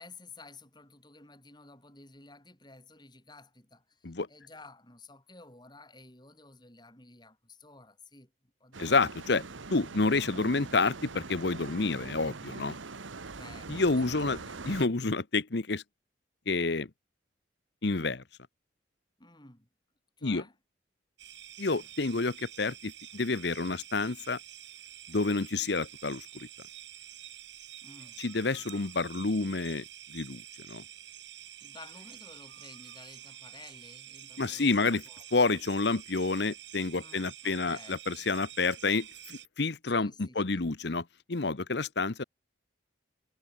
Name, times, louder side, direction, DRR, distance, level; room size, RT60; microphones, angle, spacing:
voice 1, 0.0-9.0 13.3-14.8 19.2-19.7 20.2-20.6 27.8-28.2 28.6-28.7 31.6-35.3 36.9-38.0 39.9-40.7, left 3 dB, 20° left, 7.0 m, -53 dB
sound 1, 8.7-14.9, right 3 dB, 80° right, 1.2 m, -43 dB
voice 2, 8.8-9.4 9.7-12.8 13.7-14.4 14.6-15.8 16.5-16.9 17.8-18.2 20.2-20.4 21.6-24.4 25.1-26.5 28.2-29.8 30.1-30.4 30.7-30.8 34.4-35.0 35.3-41.0 41.3-42.2, left 3 dB, 55° left, 0.9 m, -29 dB
sound 2, 21.2-39.5, right 11 dB, 65° right, 7.5 m, -48 dB
head